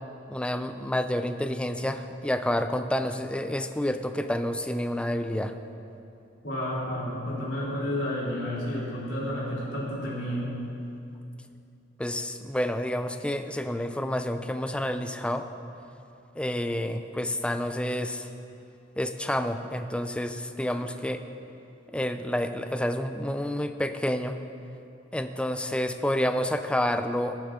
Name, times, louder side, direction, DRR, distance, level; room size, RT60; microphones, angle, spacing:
voice 1, 0.3-5.6 12.0-15.5 16.4-18.3 19.0-21.2 21.9-24.4 25.1-27.4, left 1 dB, 5° left, 8 dB, 0.4 m, -29 dB
voice 2, 6.4-10.5, left 1 dB, 75° left, -7 dB, 3.3 m, -31 dB
16.5 x 11.0 x 3.7 m, 2.7 s
head